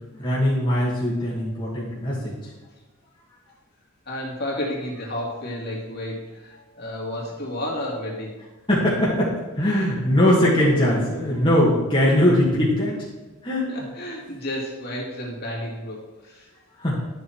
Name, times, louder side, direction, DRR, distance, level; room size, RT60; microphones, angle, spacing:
voice 1, 0.2-2.3 8.7-13.0 13.4-13.8 16.8-16.9, left 1 dB, 25° left, -7 dB, 2.0 m, -21 dB
voice 2, 4.1-8.4 13.7-16.5, left 1 dB, 45° left, -3 dB, 2.7 m, -31 dB
12.5 x 7.3 x 4.8 m, 1.2 s
head